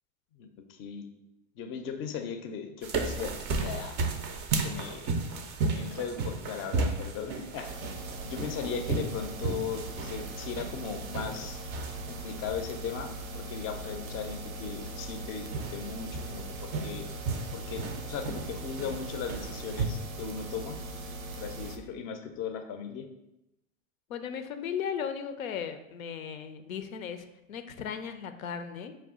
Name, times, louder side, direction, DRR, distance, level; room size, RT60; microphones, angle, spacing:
voice 1, 0.4-1.1 1.6-3.4 3.6-4.0 4.6-5.1 5.7-11.6 12.1-13.1 13.3-17.1 17.5-20.8 21.4-23.1, left 7 dB, 30° left, 6 dB, 0.4 m, -38 dB
sound 1, 2.8-19.8, right 3 dB, 30° right, 0.4 m, -35 dB
sound 2, 7.6-21.8, right 2 dB, 90° right, 0.6 m, -40 dB
voice 2, 24.1-29.0, left 7 dB, 80° left, 8 dB, 0.5 m, -36 dB
4.9 x 2.3 x 3.5 m, 0.91 s
hypercardioid pair, 95°, 41 cm